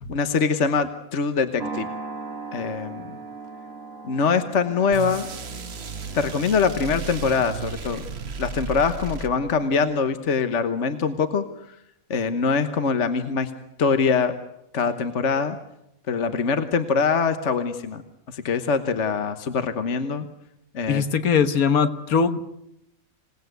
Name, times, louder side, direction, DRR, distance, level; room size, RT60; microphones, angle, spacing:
voice 1, 0.1-1.9 2.5-3.2 4.0-5.3 6.1-8.0 8.4-11.4 12.1-13.5 13.8-14.3 14.7-15.6 16.1-18.0 18.3-20.3 20.7-21.0, left 5 dB, 55° left, 9 dB, 1.5 m, -23 dB
sound 1, 1.6-10.1, right 4 dB, 70° right, 2.4 m, -40 dB
Reece Drop, 4.9-9.7, right 5 dB, 50° right, 1.4 m, -34 dB
voice 2, 20.9-22.4, left 6 dB, 80° left, 11 dB, 1.7 m, -21 dB
27.0 x 18.5 x 8.1 m, 0.80 s
omnidirectional pair, 1.5 m